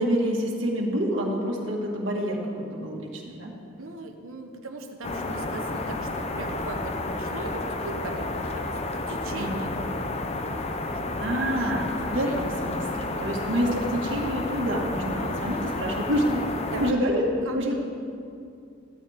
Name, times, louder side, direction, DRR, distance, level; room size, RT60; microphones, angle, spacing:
voice 1, 0.0-3.5 9.2-9.7 11.2-16.4 16.8-17.2 17.5-17.8, equal, 60° right, -2 dB, 2.0 m, -27 dB
voice 2, 3.8-11.7 12.1-12.6 16.6-17.7, right 2 dB, 80° right, 4 dB, 1.2 m, -40 dB
sound 1, 5.0-16.9, left 2 dB, 30° left, 0.7 m, -31 dB
15.5 x 13.0 x 3.7 m, 2.5 s
head